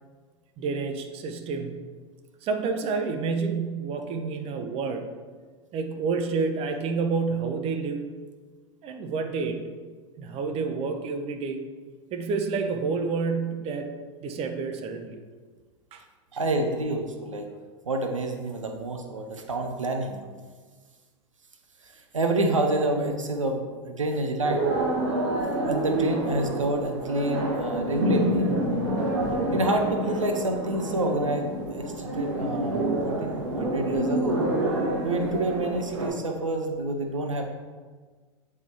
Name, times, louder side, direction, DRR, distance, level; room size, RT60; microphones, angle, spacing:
voice 1, 0.6-1.7 2.4-5.0 5.7-8.0 8.8-9.6 10.2-11.6 12.1-13.9 14.2-15.2 15.9-16.0, right 4 dB, 40° right, 5 dB, 0.8 m, -29 dB
voice 2, 16.4-17.5 17.9-20.2 21.8-24.7 25.6-28.5 29.5-34.5 35.0-37.5, right 2 dB, 90° right, 4 dB, 0.7 m, -28 dB
sound 1, 24.4-36.1, right 1 dB, 70° right, 1.4 m, -27 dB
8.5 x 4.8 x 2.9 m, 1.5 s
hypercardioid pair, 90°, 16 cm